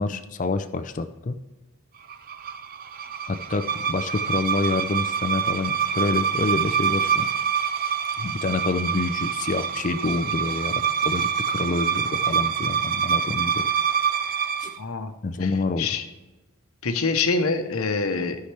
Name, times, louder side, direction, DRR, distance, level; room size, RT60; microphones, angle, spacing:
voice 1, 0.0-1.4 3.3-7.3 8.2-13.7 14.6-14.7 15.2-15.9, left 3 dB, 35° left, 10 dB, 0.4 m, -27 dB
sound 1, 2.1-14.8, right 7 dB, 40° right, 0.3 m, -26 dB
voice 2, 14.8-15.1 15.8-16.0 16.8-18.4, left 4 dB, 75° left, 7 dB, 0.9 m, -25 dB
13.0 x 5.8 x 3.3 m, 1.1 s
head